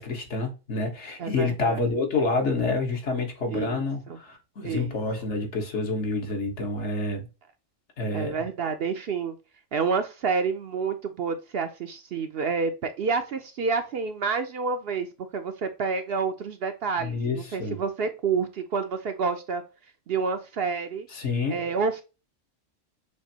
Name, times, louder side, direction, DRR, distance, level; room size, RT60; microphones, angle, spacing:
voice 1, 0.0-7.3 8.0-8.3 17.0-17.8 21.1-21.6, left 3 dB, 65° left, 1.5 m, -28 dB
voice 2, 1.2-1.8 3.5-4.2 4.6-4.9 8.1-9.4 9.7-15.1 15.3-19.6 20.1-21.1 21.5-22.0, right 5 dB, 60° right, 0.8 m, -29 dB
6.4 x 2.6 x 2.8 m
omnidirectional pair, 1.3 m